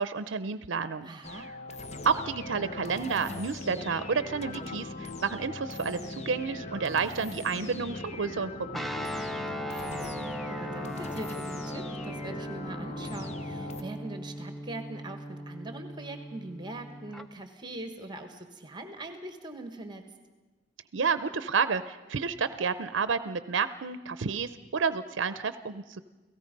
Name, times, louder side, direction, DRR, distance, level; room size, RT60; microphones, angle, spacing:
voice 1, 0.0-1.1 2.0-8.8 20.9-26.0, right 5 dB, 80° right, 13 dB, 0.6 m, -30 dB
voice 2, 1.0-1.5 9.5-20.0, right 2 dB, 25° right, 7 dB, 1.4 m, -42 dB
sound 1, 1.2-13.8, left 2 dB, 35° left, 0.8 m, -40 dB
Guitar, 8.7-17.3, equal, ahead, 0.6 m, -38 dB
30.0 x 17.5 x 5.3 m, 1.2 s
head